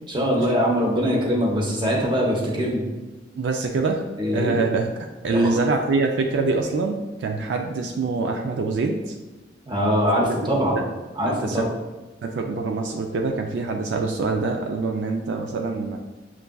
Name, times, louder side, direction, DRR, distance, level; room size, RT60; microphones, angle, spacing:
voice 1, 0.1-2.8 4.2-4.6 5.3-5.4 9.7-10.8 11.2-11.6, equal, 25° right, -3 dB, 0.8 m, -22 dB
voice 2, 3.4-4.0 4.3-4.9 5.2-9.1 10.3-10.9 11.3-11.7 12.2-16.0, right 3 dB, 70° right, 3 dB, 0.3 m, -25 dB
6.7 x 2.4 x 2.2 m, 1.2 s
head